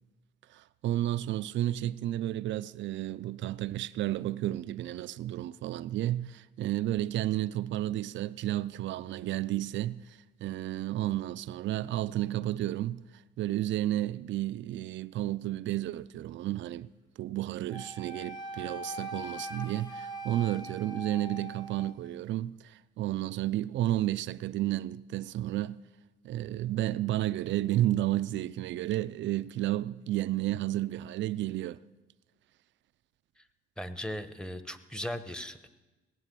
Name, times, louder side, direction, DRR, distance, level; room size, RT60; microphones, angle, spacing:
voice 1, 0.5-13.0 13.4-16.9 17.2-25.8 26.2-31.8, right 14 dB, 70° right, 0.5 m, -32 dB
Wind instrument woodwind instrument, 17.7-22.0, right 1 dB, 20° left, 1.4 m, -41 dB
voice 2, 33.8-35.7, equal, 5° left, 1.0 m, -38 dB
17.5 x 9.0 x 7.6 m
cardioid pair, 90°, 20 cm